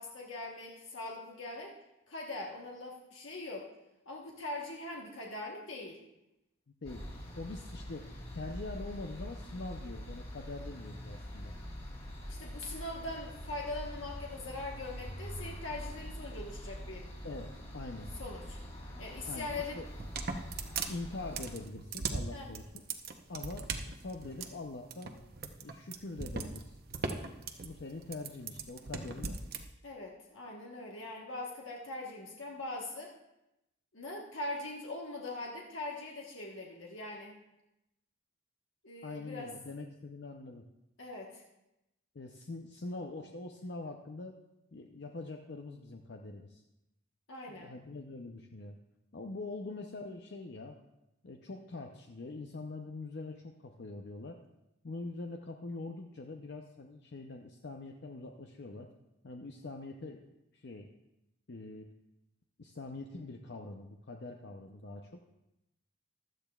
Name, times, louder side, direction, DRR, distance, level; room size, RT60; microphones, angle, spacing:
voice 1, 0.0-1.7 2.1-3.7 4.0-6.0 12.3-17.1 18.1-18.6 19.0-19.8 22.3-22.5 29.8-33.1 33.9-37.4 38.8-39.5 41.0-41.4 47.3-47.7, left 2 dB, 75° left, -1 dB, 1.3 m, -41 dB
sound 1, 6.8-21.6, equal, 30° left, 3.2 m, -44 dB
voice 2, 7.4-11.5 17.2-18.1 19.3-19.8 20.9-22.8 23.3-25.1 25.6-26.7 27.6-29.4 39.0-40.7 42.1-44.3 44.7-46.6 47.5-48.8 49.1-50.8 51.2-54.4 54.8-58.9 59.2-60.9 61.5-61.9 62.6-65.2, left 2 dB, 55° left, 3 dB, 0.6 m, -44 dB
sound 2, 19.9-29.6, right 4 dB, 50° right, 0.8 m, -39 dB
15.5 x 12.0 x 2.4 m, 0.91 s
head